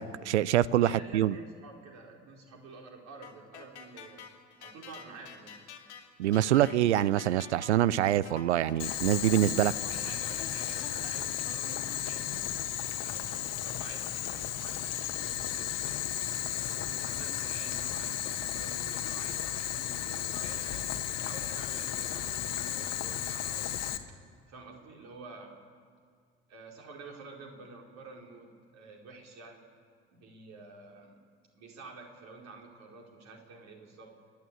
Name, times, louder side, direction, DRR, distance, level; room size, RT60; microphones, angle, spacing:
voice 1, 0.0-1.4 6.2-9.7, right 12 dB, 80° right, 21 dB, 0.5 m, -25 dB
voice 2, 0.7-4.2 4.6-5.6 9.5-12.4 13.0-16.0 16.5-20.9 21.2-24.0 24.5-25.5 26.5-29.6 30.1-31.2 31.5-34.1, right 3 dB, 50° right, 0 dB, 4.7 m, -49 dB
sound 1, 3.2-11.8, left 7 dB, 80° left, 2.3 m, -49 dB
Boiling, 8.8-24.0, left 11 dB, 50° left, 1.6 m, -34 dB
29.5 x 11.5 x 8.6 m, 2.1 s
figure-of-eight pair, 55°, 34 cm